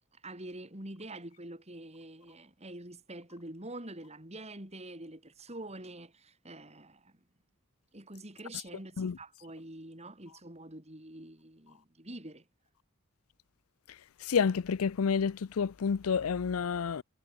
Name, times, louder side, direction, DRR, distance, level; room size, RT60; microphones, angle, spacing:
voice 1, 0.1-7.2 7.9-12.4, right 1 dB, 30° right, 4.9 m, -46 dB
voice 2, 14.3-17.0, left 6 dB, 80° left, 0.5 m, -29 dB
head